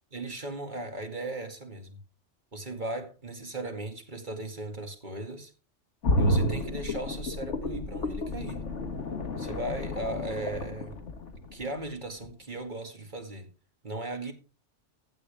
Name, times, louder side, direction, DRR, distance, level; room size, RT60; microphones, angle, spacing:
voice 1, 0.1-2.0 2.5-5.5 6.2-8.6 9.4-11.0 11.5-13.5 13.8-14.3, right 2 dB, 40° right, 2.2 m, -37 dB
sound 1, 6.0-11.9 12.2-12.3, left 1 dB, 70° left, 1.9 m, -30 dB
15.0 x 9.0 x 3.4 m
omnidirectional pair, 1.3 m